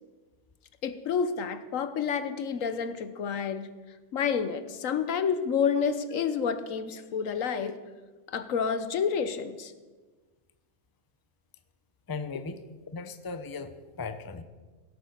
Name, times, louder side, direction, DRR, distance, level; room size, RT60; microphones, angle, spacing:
voice 1, 0.8-3.7 4.1-7.8 8.3-9.7, left 6 dB, 75° left, 11 dB, 1.2 m, -29 dB
voice 2, 12.1-12.6 12.9-14.4, left 4 dB, 20° left, 10 dB, 0.6 m, -37 dB
17.0 x 8.6 x 6.5 m, 1.3 s
omnidirectional pair, 1.4 m